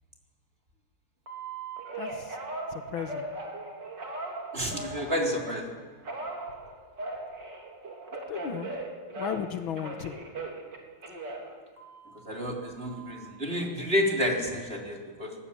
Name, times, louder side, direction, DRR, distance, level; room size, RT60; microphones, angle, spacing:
Telephone, 1.3-5.6 6.0-9.5 9.8-12.3 12.8-13.3, right 2 dB, 50° right, 3.9 m, -39 dB
voice 1, 2.0-2.4 2.7-3.3 8.3-8.7 9.1-10.1, left 8 dB, 70° left, 9 dB, 1.8 m, -35 dB
voice 2, 4.5-5.7 12.2-15.4, equal, 25° right, 0 dB, 3.9 m, -30 dB
23.0 x 19.0 x 8.7 m, 1.5 s
omnidirectional pair, 2.4 m